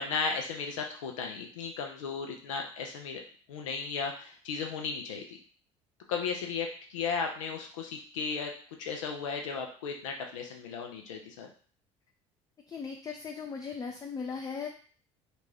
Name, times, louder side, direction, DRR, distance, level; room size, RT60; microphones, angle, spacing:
voice 1, 0.0-3.2 3.5-5.4 6.1-8.5 8.8-11.5, left 5 dB, 80° left, 3 dB, 0.5 m, -35 dB
voice 2, 12.7-14.7, left 5 dB, 25° left, 3 dB, 0.4 m, -38 dB
2.5 x 2.3 x 3.2 m, 0.43 s
hypercardioid pair, 65°, 16 cm